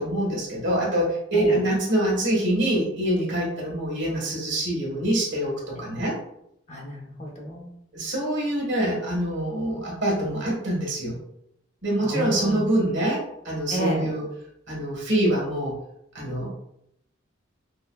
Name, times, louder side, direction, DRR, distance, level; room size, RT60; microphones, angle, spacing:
voice 1, 0.0-6.1 7.9-11.2 11.8-14.2 14.7-15.7 16.1-16.5, right 1 dB, 75° right, -3 dB, 1.5 m, -25 dB
voice 2, 6.7-7.7 12.0-12.7 13.7-14.1, equal, 35° left, -1 dB, 0.8 m, -31 dB
5.3 x 2.3 x 2.3 m, 0.76 s
head